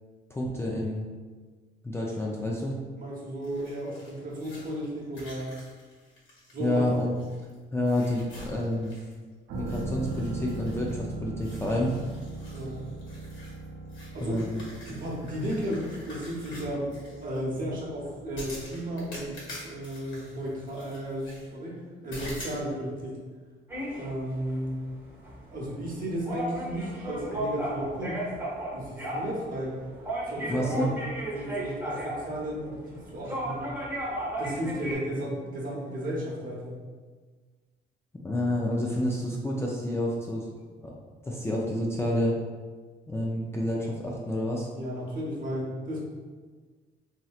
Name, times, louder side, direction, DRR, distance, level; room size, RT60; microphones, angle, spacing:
voice 1, 0.3-1.1 1.8-2.8 6.6-7.1 7.7-9.0 9.5-11.9 14.2-14.6 30.5-30.9 38.2-40.5 40.8-40.9 41.2-42.3 43.1-44.7, left 1 dB, 15° left, -4 dB, 0.4 m, -29 dB
voice 2, 3.0-5.6 6.5-6.8 12.5-12.9 14.1-14.4 14.8-19.4 19.6-21.8 22.0-23.2 23.9-24.8 25.5-28.2 28.7-29.8 30.3-30.9 31.3-33.6 34.4-36.8 44.7-46.1, equal, 45° right, -4 dB, 1.0 m, -34 dB
sound 1, 3.4-7.5 7.9-9.2 9.6-11.1 11.4-17.4 18.4-21.5 22.1-22.6, left 1 dB, 75° left, 1.2 m, -46 dB
sound 2, 9.5-21.1 21.4-21.5, right 3 dB, 80° right, 0.5 m, -40 dB
sound 3, 23.7-34.9, right 1 dB, 10° right, 0.9 m, -34 dB
3.0 x 2.8 x 2.4 m, 1.4 s
cardioid pair, 90°, 20 cm